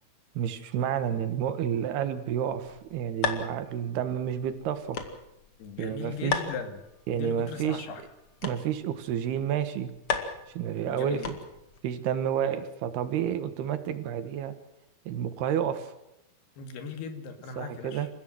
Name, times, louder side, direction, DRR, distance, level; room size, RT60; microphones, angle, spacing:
voice 1, 0.4-5.0 5.8-6.4 7.1-7.9 8.4-9.9 10.6-11.2 11.8-14.5 15.1-15.9 17.6-18.1, right 9 dB, 85° right, 11 dB, 3.6 m, -30 dB
sound 1, 2.5-11.8, left 5 dB, 40° left, 2.4 m, -37 dB
voice 2, 5.6-6.8 7.1-8.0 10.9-11.4 16.6-18.1, left 5 dB, 85° left, 8 dB, 4.2 m, -38 dB
28.0 x 15.5 x 7.8 m, 0.87 s
omnidirectional pair, 4.5 m